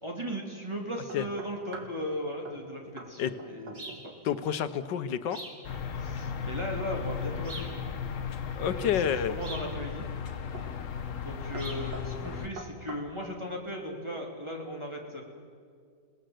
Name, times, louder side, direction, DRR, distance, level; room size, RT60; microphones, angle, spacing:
voice 1, 0.0-4.0 6.0-7.7 8.6-10.1 11.2-15.2, equal, 15° right, -1 dB, 2.7 m, -37 dB
sound 1, 1.1-2.0 2.4-2.7 3.0-3.1 3.4-4.1 4.4-4.7 8.1-8.7 9.3-9.8 10.5-10.8 11.1-11.3 11.5-13.4, right 2 dB, 75° right, 2.7 m, -45 dB
sound 2, 3.7-4.1 5.3-5.7 7.4-7.8 9.4-9.7 11.6-11.9, right 2 dB, 45° right, 3.2 m, -43 dB
voice 2, 4.2-5.4 8.6-9.4, left 9 dB, 75° left, 12 dB, 1.5 m, -29 dB
sound 3, 5.6-12.5, left 7 dB, 50° left, 1.2 m, -36 dB
29.0 x 19.0 x 7.8 m, 2.2 s
omnidirectional pair, 2.0 m